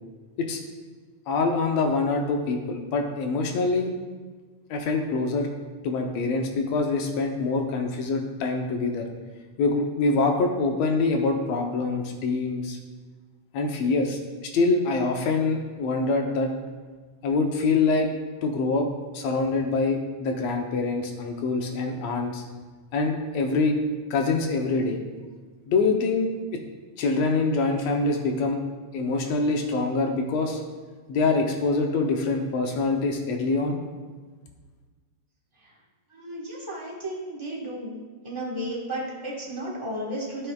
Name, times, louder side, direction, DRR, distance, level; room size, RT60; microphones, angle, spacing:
voice 1, 1.3-3.9 4.7-5.5 5.8-9.1 9.6-12.8 13.5-16.5 17.2-18.1 18.4-18.9 19.1-22.4 22.9-23.8 24.1-25.0 25.7-26.3 27.0-28.6 28.9-30.6 31.1-33.8, left 3 dB, 70° left, 3 dB, 1.9 m, -25 dB
voice 2, 36.1-37.9 38.2-40.5, right 1 dB, 40° right, -5 dB, 0.4 m, -33 dB
12.5 x 7.9 x 2.4 m, 1.4 s
omnidirectional pair, 3.5 m